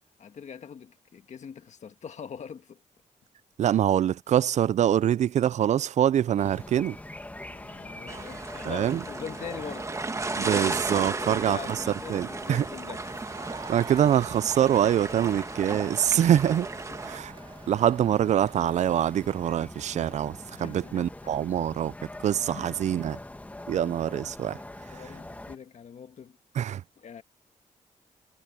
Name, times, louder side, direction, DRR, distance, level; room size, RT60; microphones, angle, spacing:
voice 1, 0.2-2.8 7.5-9.9 11.2-13.2 16.9-17.3 20.6-21.3 22.5-22.6 24.9-26.4 27.0-27.2, left 7 dB, 60° left, 1.6 m, -43 dB
voice 2, 3.6-7.0 8.6-9.0 10.4-11.8 12.1-12.7 13.7-16.7 17.0-17.3 17.7-21.9 22.2-23.2 23.7-24.6 24.9-25.0 26.6-26.8, right 10 dB, 60° right, 0.4 m, -24 dB
sound 1, 6.4-25.6, left 1 dB, 10° left, 1.4 m, -44 dB
sound 2, 8.1-17.2, right 3 dB, 25° right, 1.3 m, -35 dB
Crowd, 13.1-19.7, right 4 dB, 40° right, 3.5 m, -46 dB
wide cardioid pair, 125°, 13 cm